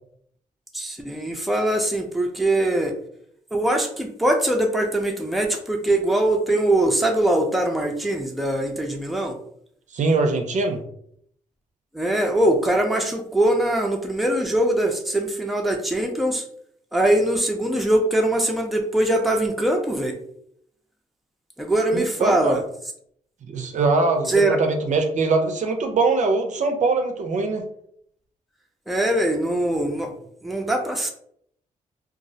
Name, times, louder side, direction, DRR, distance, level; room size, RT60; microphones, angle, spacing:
voice 1, 0.7-2.9 3.5-9.3 11.9-16.4 16.9-20.1 21.6-22.6 24.3-24.6 28.9-30.1 30.4-31.1, right 1 dB, ahead, 2 dB, 0.4 m, -22 dB
voice 2, 9.9-10.8 21.9-22.6 23.5-27.6, right 3 dB, 60° right, 5 dB, 0.4 m, -22 dB
2.3 x 2.0 x 2.6 m, 0.67 s
cardioid pair, 75°, 14 cm